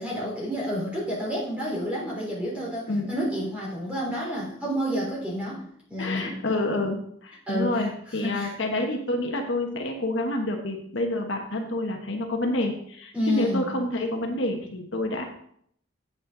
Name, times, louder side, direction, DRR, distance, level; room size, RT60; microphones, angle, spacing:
voice 1, 0.0-5.6 5.9-6.4 7.5-7.9 8.2-8.5 13.1-13.7, equal, 5° right, -6 dB, 3.8 m, -29 dB
voice 2, 6.0-15.2, left 1 dB, 65° left, 3 dB, 1.2 m, -28 dB
8.6 x 8.3 x 3.9 m, 0.66 s
head